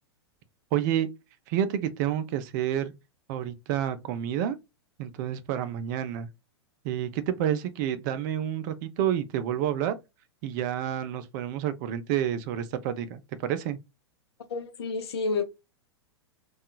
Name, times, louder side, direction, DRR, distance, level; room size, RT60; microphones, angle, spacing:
voice 1, 0.7-1.1 1.5-2.9 3.3-4.6 5.0-6.3 6.8-10.0 10.4-13.8, right 10 dB, 45° right, 0.5 m, -29 dB
voice 2, 14.5-15.4, left 4 dB, 65° left, 0.7 m, -29 dB
2.7 x 2.4 x 2.2 m
figure-of-eight pair, 100°, 14 cm